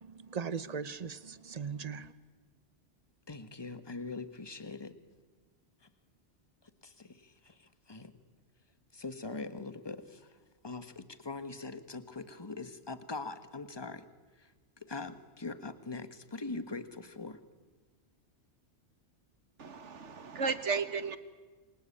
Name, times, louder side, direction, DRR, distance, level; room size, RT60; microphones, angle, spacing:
voice 1, 0.0-2.1, right 6 dB, 35° right, 1.0 m, -39 dB
voice 2, 3.3-5.0 6.8-8.1 8.9-10.3 10.6-14.0 14.4-14.5 14.8-17.4, left 3 dB, 20° left, 1.4 m, -42 dB
voice 3, 19.6-21.2, right 5 dB, 85° right, 1.8 m, -34 dB
28.0 x 24.5 x 8.6 m
omnidirectional pair, 1.2 m